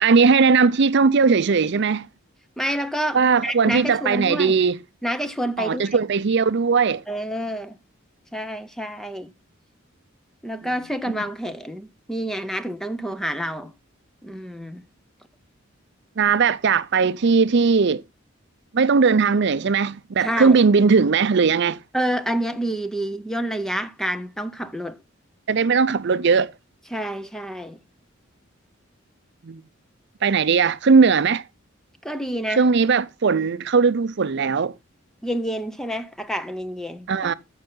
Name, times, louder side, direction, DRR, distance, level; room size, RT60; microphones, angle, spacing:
voice 1, 0.0-2.1 3.1-4.8 5.6-7.0 16.2-18.0 18.7-21.8 25.5-26.5 29.4-29.6 30.2-31.4 32.6-34.7 37.1-37.3, right 5 dB, 55° right, 0.5 m, -18 dB
voice 2, 2.6-4.6 5.0-6.0 7.1-7.8 8.3-9.3 10.4-13.7 14.2-14.8 20.2-20.6 21.9-25.0 26.9-27.8 32.0-32.7 35.2-37.3, right 1 dB, ahead, 0.6 m, -28 dB
14.0 x 5.7 x 3.7 m
head